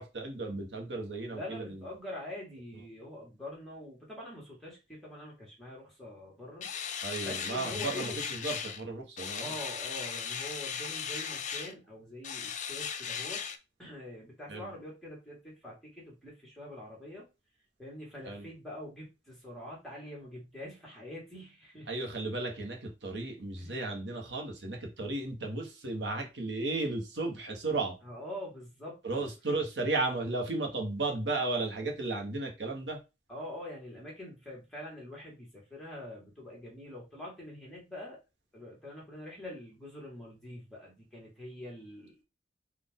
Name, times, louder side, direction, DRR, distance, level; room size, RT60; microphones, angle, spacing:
voice 1, 0.0-1.8 7.0-9.5 14.5-14.7 18.3-18.5 21.9-27.9 29.0-33.0, right 2 dB, 80° right, 1.1 m, -34 dB
voice 2, 1.3-6.7 7.2-8.2 9.4-13.4 13.8-17.2 17.8-21.9 23.6-23.7 28.0-29.3 33.3-38.2 38.5-42.1, left 1 dB, ahead, 1.6 m, -44 dB
sound 1, 6.6-8.8 9.2-11.7 12.2-13.6, left 7 dB, 40° left, 0.4 m, -37 dB
4.2 x 2.5 x 3.6 m
head